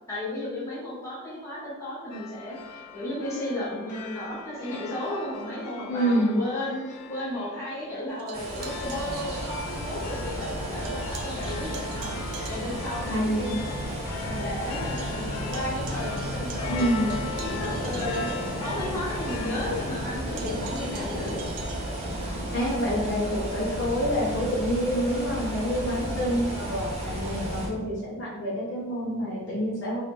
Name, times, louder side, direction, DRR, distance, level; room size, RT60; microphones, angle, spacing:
voice 1, 0.1-12.1 12.5-13.8 14.2-18.3 18.6-21.4 25.7-26.4, left 1 dB, 15° left, -9 dB, 1.3 m, -34 dB
sound 1, 2.1-19.9, left 7 dB, 90° left, 0.3 m, -41 dB
voice 2, 5.9-6.4 13.1-13.6 16.7-17.2 22.5-30.0, equal, 55° left, -7 dB, 1.0 m, -27 dB
sound 2, 8.1-10.1 10.4-13.0 13.5-13.6 14.0-14.1 14.4-19.2 20.4-22.3, right 6 dB, 90° right, 0.5 m, -43 dB
sound 3, 8.3-27.7, equal, 30° right, 0.8 m, -33 dB
2.9 x 2.8 x 3.5 m, 1.2 s
head